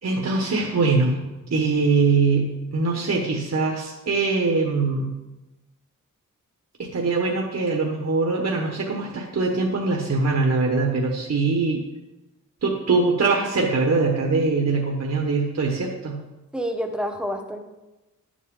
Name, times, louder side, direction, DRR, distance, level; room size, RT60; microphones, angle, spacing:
voice 1, 0.0-1.2 1.5-5.1 6.8-11.8 12.6-16.2, right 3 dB, 55° right, 0 dB, 1.2 m, -22 dB
voice 2, 16.5-17.6, equal, 5° right, 4 dB, 1.1 m, -28 dB
11.0 x 7.4 x 3.8 m, 1.0 s
wide cardioid pair, 100°, 31 cm